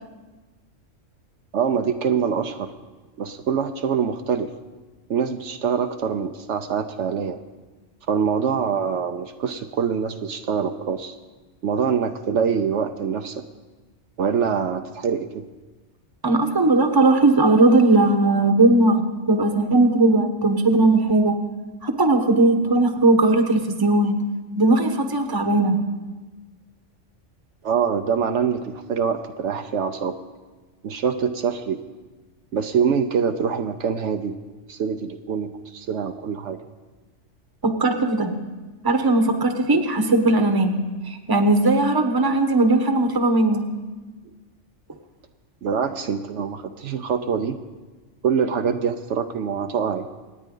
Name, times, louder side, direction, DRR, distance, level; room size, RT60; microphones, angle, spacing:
voice 1, 1.5-2.7 3.2-4.5 5.1-7.4 8.1-11.1 11.6-13.4 14.2-15.4 27.6-30.2 30.8-31.8 32.5-34.4 34.7-36.6 45.6-47.6 48.2-50.1, right 6 dB, 70° right, 7 dB, 1.0 m, -24 dB
voice 2, 16.2-21.4 21.8-24.2 24.6-25.8 37.6-38.4 38.8-43.7, right 2 dB, 20° right, 6 dB, 1.0 m, -18 dB
26.5 x 9.3 x 3.8 m, 1.2 s
omnidirectional pair, 1.3 m